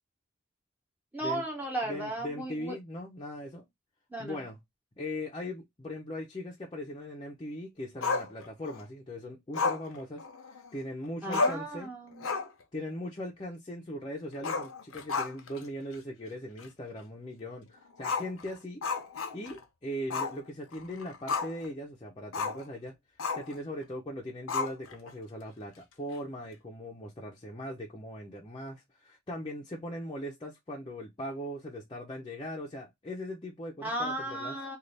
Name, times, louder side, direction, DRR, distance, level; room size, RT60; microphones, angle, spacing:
voice 1, 1.1-2.8 4.1-4.4 11.2-12.4 33.8-34.8, right 1 dB, 10° right, 0.8 m, -35 dB
voice 2, 1.8-3.6 4.2-4.6 5.0-10.2 10.5-11.9 12.7-18.8 19.3-22.9 23.4-34.6, left 1 dB, 25° left, 0.6 m, -39 dB
Growling, 8.0-8.8 9.5-10.8 11.0-11.1 11.3-11.7 12.1-12.6 12.9-13.0 14.3-15.6 15.9-16.0 16.6-16.7 18.0-19.6 20.1-20.4 20.7-21.7 22.3-22.6 23.2-23.6 24.5-25.1, left 4 dB, 85° left, 0.7 m, -32 dB
3.3 x 2.4 x 3.9 m
head